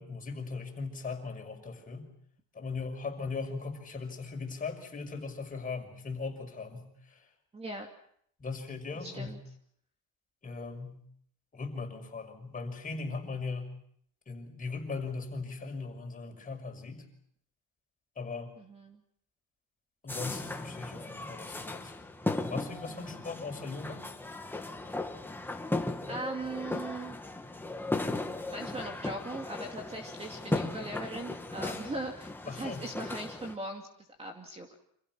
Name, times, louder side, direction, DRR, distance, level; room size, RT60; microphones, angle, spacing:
voice 1, 0.0-2.1 2.5-7.2 8.4-9.3 10.4-11.0 11.5-13.7 14.3-17.0 18.2-18.5 20.0-21.9 22.5-24.1 32.5-32.9, left 4 dB, 20° left, 3 dB, 5.9 m, -39 dB
voice 2, 7.5-7.9 9.0-9.4 18.6-19.0 23.1-23.2 26.1-27.2 28.5-33.9 34.2-34.7, right 2 dB, 15° right, 3 dB, 2.6 m, -39 dB
sound 1, 20.1-33.5, left 2 dB, 5° left, 2.0 m, -37 dB
29.5 x 27.5 x 6.2 m, 0.68 s
cardioid pair, 155°, 39 cm